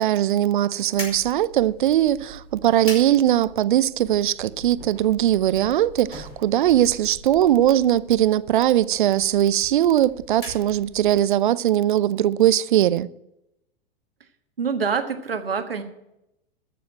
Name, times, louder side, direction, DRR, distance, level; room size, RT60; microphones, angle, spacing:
voice 1, 0.0-13.1, right 12 dB, 60° right, 0.6 m, -20 dB
sound 1, 0.9-11.3, equal, 90° left, 5.5 m, -42 dB
voice 2, 14.6-15.8, right 6 dB, 80° right, 1.6 m, -25 dB
13.5 x 7.0 x 7.8 m
figure-of-eight pair, 100°, 29 cm